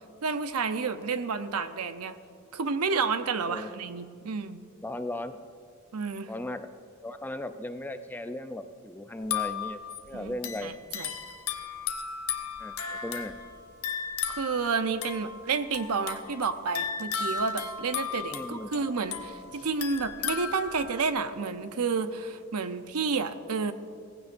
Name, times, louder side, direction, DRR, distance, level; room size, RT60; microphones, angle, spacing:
voice 1, 0.2-2.1 2.5-4.6 5.9-6.3 10.1-10.3 10.6-11.1 14.3-23.7, right 5 dB, 85° right, 10 dB, 0.7 m, -30 dB
voice 2, 4.8-5.4 6.3-6.7 7.0-9.8 10.1-10.7 12.6-13.4 18.3-18.7, left 1 dB, 10° left, 8 dB, 0.5 m, -37 dB
sound 1, 9.2-21.1, left 7 dB, 75° left, 1.0 m, -35 dB
17.5 x 15.5 x 2.6 m, 2.4 s
head